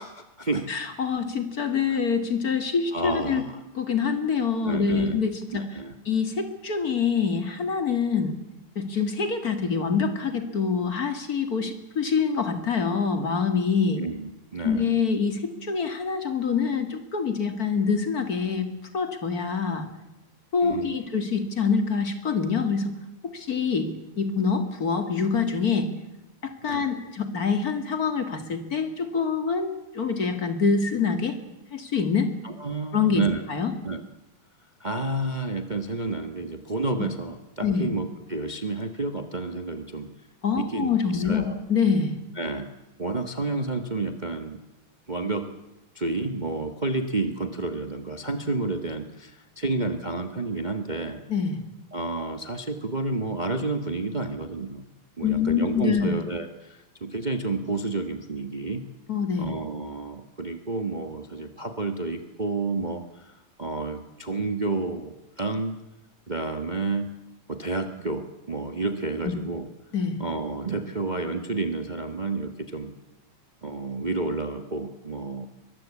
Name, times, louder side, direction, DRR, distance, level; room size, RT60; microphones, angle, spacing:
voice 1, 0.0-0.7 1.9-2.0 2.9-3.6 4.6-5.2 5.5-6.0 13.9-14.9 20.6-21.0 26.6-26.9 32.4-33.4 33.8-34.0 34.8-40.1 40.6-41.6 42.4-42.7 43.0-44.6 45.1-45.5 45.9-51.2 51.9-54.9 55.2-58.8 59.4-65.8 66.3-67.1 67.5-69.7 70.2-72.9 73.6-75.5, right 2 dB, 80° right, 7 dB, 0.4 m, -30 dB
voice 2, 0.7-3.4 3.8-5.7 6.1-8.4 8.8-14.0 14.6-18.7 18.9-19.9 20.5-22.9 23.3-23.9 24.2-25.9 26.4-31.4 31.7-32.3 32.9-33.2 33.5-33.7 37.0-37.1 37.6-37.9 40.4-42.2 51.3-51.6 55.2-56.1 59.1-59.5 69.2-69.3 69.9-70.2, left 5 dB, 35° left, 8 dB, 2.1 m, -25 dB
23.0 x 21.0 x 8.6 m, 0.94 s
omnidirectional pair, 3.3 m